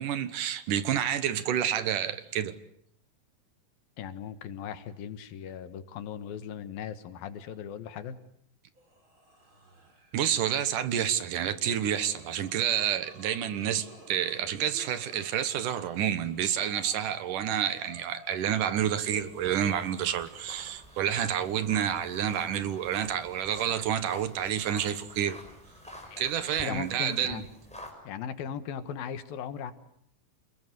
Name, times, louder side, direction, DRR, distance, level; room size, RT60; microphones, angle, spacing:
voice 1, 0.0-2.6 10.1-25.4 26.2-27.4, right 10 dB, 70° right, 2.7 m, -29 dB
voice 2, 4.0-8.2 26.1-26.3 26.6-27.5 28.0-29.7, left 8 dB, 85° left, 3.3 m, -38 dB
Zombie Restraint, 8.8-20.3 20.6-23.2 23.6-28.1, right 2 dB, 35° right, 5.8 m, -53 dB
sound 1, 19.2-27.9, equal, ahead, 5.7 m, -48 dB
28.0 x 21.0 x 9.4 m
omnidirectional pair, 4.1 m